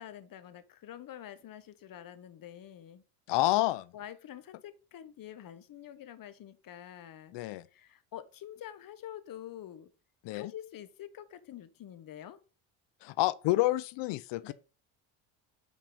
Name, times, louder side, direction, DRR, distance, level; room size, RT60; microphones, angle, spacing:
voice 1, 0.0-3.0 3.9-7.3 7.7-9.9 10.3-12.4 14.4-14.5, left 11 dB, 45° left, 1.1 m, -47 dB
voice 2, 3.3-3.9 7.3-7.7 10.2-10.5 13.0-14.5, left 17 dB, 65° left, 0.6 m, -29 dB
5.4 x 5.2 x 5.4 m
supercardioid pair, 90°, 45 cm